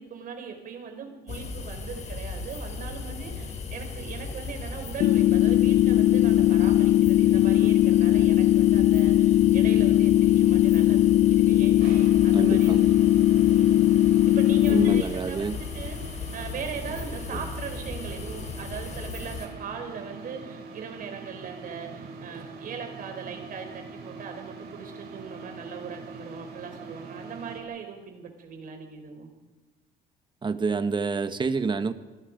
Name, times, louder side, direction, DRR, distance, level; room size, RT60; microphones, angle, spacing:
voice 1, 0.0-12.8 13.4-13.9 14.3-29.3, right 6 dB, 55° right, 5 dB, 4.6 m, -40 dB
sound 1, 1.3-19.5, left 4 dB, 45° left, 4.2 m, -36 dB
sound 2, 5.0-15.0, left 13 dB, 70° left, 0.7 m, -19 dB
sound 3, 11.8-27.6, right 4 dB, 75° right, 7.8 m, -43 dB
voice 2, 12.3-12.9 14.7-15.6 17.3-17.4 30.4-31.9, right 5 dB, 30° right, 10 dB, 1.5 m, -28 dB
28.5 x 21.5 x 5.3 m, 1.2 s
cardioid pair, 110°, 17 cm